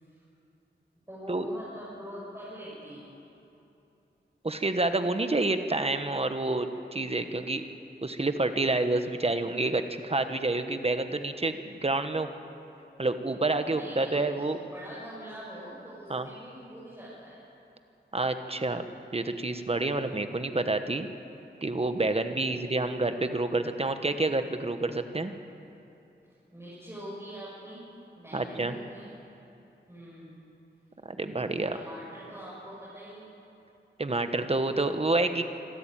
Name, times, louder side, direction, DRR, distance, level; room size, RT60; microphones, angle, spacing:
voice 1, 1.1-3.1 13.6-17.4 22.3-22.7 26.5-27.9 28.2-29.2 29.9-30.4 31.7-33.4, equal, 15° right, -8 dB, 6.2 m, -44 dB
voice 2, 4.4-7.7 8.0-12.3 13.0-14.6 16.1-16.3 18.1-18.8 19.1-21.1 21.6-25.3 28.3-28.7 31.0-31.8 34.0-35.4, right 2 dB, 35° right, 8 dB, 1.2 m, -28 dB
25.5 x 13.0 x 9.1 m, 2.9 s
wide cardioid pair, 100°, 18 cm